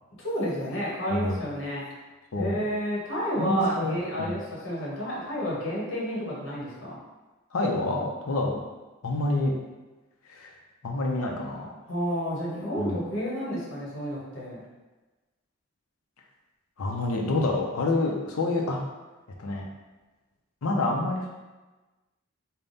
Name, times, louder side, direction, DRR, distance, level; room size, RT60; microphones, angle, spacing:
voice 1, 0.2-2.0 2.4-7.0 11.9-14.6, equal, 60° left, -6 dB, 1.2 m, -30 dB
voice 2, 1.1-1.4 2.3-2.6 3.4-4.3 7.5-8.6 9.0-9.5 10.3-10.5 10.8-11.7 12.8-13.0 16.8-18.8 19.4-19.6 20.6-21.3, left 2 dB, 85° left, 0 dB, 0.6 m, -27 dB
3.5 x 2.2 x 3.9 m, 1.2 s
head